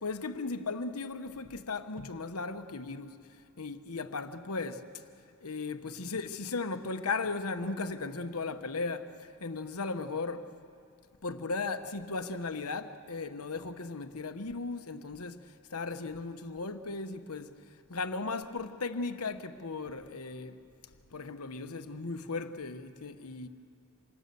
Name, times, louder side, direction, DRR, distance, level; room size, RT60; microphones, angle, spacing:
voice 1, 0.0-3.2 3.6-4.8 5.4-10.5 11.2-17.6 17.9-20.6 21.1-23.5, left 3 dB, 80° left, 1.1 m, -36 dB
28.0 x 24.5 x 6.9 m
head